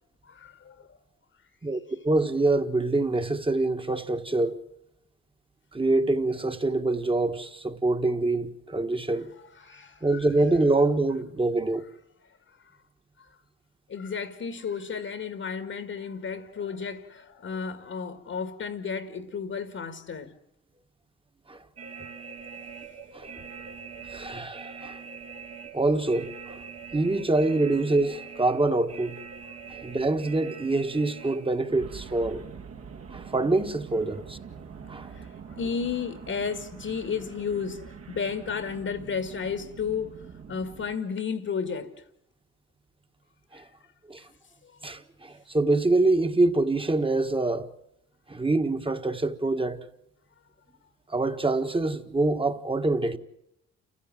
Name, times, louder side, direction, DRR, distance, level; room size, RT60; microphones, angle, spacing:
voice 1, 0.3-1.0 9.5-10.2 12.6-12.8 13.2-13.3 13.9-20.4 29.5-29.6 35.1-42.0 43.6-43.7 44.6-44.7, left 6 dB, 50° left, 1.9 m, -33 dB
voice 2, 1.6-4.6 5.7-9.3 10.0-11.8 21.5-21.6 23.1-23.4 24.1-25.0 25.7-26.6 26.9-29.2 29.7-32.4 33.1-34.4 34.9-35.1 43.5-43.6 44.1-44.2 44.8-47.7 48.3-49.8 51.1-53.2, right 2 dB, 15° right, 1.6 m, -25 dB
sound 1, 21.8-41.0, right 6 dB, 55° right, 2.0 m, -43 dB
29.5 x 15.5 x 7.7 m
cardioid pair, 90°, 30 cm